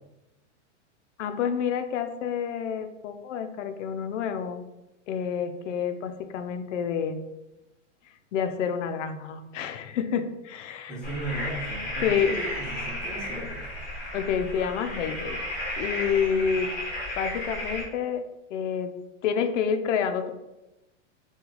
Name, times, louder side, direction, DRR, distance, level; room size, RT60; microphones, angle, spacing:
voice 1, 1.2-4.6 5.1-7.2 8.3-11.0 12.0-12.3 14.1-15.4 15.8-16.7 17.2-18.2 18.5-18.9 19.2-20.3, left 7 dB, 80° left, 8 dB, 0.5 m, -28 dB
voice 2, 10.9-13.7, right 2 dB, ahead, -6 dB, 0.5 m, -36 dB
sound 1, 11.0-17.8, left 1 dB, 20° left, 1.0 m, -33 dB
2.9 x 2.3 x 3.8 m, 0.98 s
supercardioid pair, 150°, 36 cm